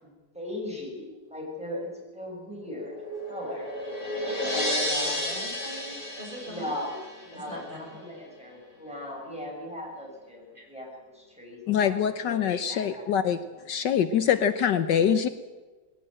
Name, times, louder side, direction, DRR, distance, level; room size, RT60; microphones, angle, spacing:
voice 1, 0.0-2.9 3.3-3.7 4.4-5.3 6.5-7.0 7.2-12.4 12.7-13.1, left 1 dB, 5° right, -2 dB, 7.1 m, -38 dB
sound 1, 2.5-7.6, left 1 dB, 50° left, 7.7 m, -32 dB
voice 2, 4.6-7.0 7.3-8.0 10.5-10.6, equal, 25° right, -2 dB, 7.6 m, -43 dB
voice 3, 11.7-13.4 13.7-15.3, left 8 dB, 70° left, 10 dB, 1.5 m, -24 dB
20.0 x 17.5 x 9.0 m, 1.3 s
omnidirectional pair, 2.0 m